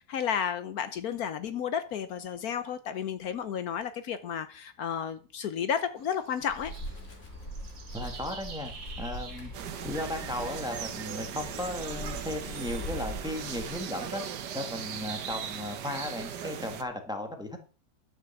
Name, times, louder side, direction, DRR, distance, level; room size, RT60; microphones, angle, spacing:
voice 1, 0.1-6.7, left 8 dB, 70° left, 1.2 m, -32 dB
sound 1, 6.0-15.2, right 5 dB, 55° right, 2.0 m, -51 dB
Wind, 6.4-14.2, equal, 45° left, 2.8 m, -42 dB
voice 2, 7.9-9.5 9.8-14.2 14.5-17.6, left 1 dB, 5° right, 1.4 m, -36 dB
sound 2, 9.5-16.8, right 8 dB, 90° right, 1.6 m, -38 dB
11.0 x 6.1 x 7.0 m
omnidirectional pair, 1.7 m